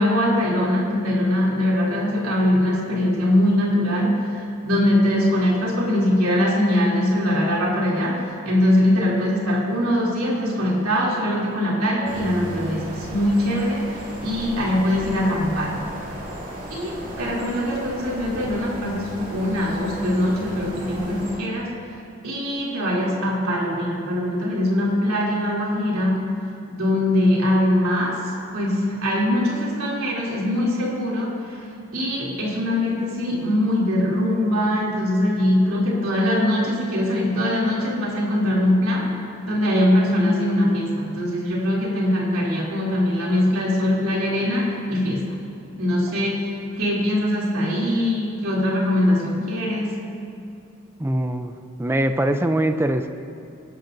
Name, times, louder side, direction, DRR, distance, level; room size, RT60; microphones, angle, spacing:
voice 1, 0.0-4.2 4.6-13.9 14.2-15.8 16.7-21.7 22.2-26.3 26.8-28.2 28.5-31.7 31.9-39.1 39.5-45.3 45.8-50.0, left 1 dB, 90° right, -4 dB, 3.0 m, -22 dB
sound 1, 12.0-21.4, equal, 40° right, 2.4 m, -35 dB
voice 2, 51.0-53.1, right 1 dB, 10° right, 7 dB, 0.5 m, -23 dB
24.0 x 12.0 x 2.7 m, 2.6 s
head